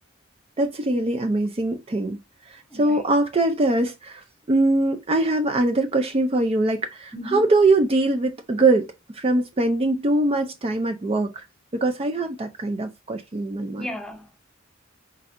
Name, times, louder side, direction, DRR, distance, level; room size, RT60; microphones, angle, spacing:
voice 1, 0.6-2.2 2.5-8.9 9.1-11.4 11.7-13.9, right 2 dB, 30° right, 0.4 m, -22 dB
voice 2, 2.7-3.0 7.1-7.5 13.8-14.4, left 1 dB, 5° left, 0.7 m, -35 dB
4.3 x 4.0 x 2.5 m
head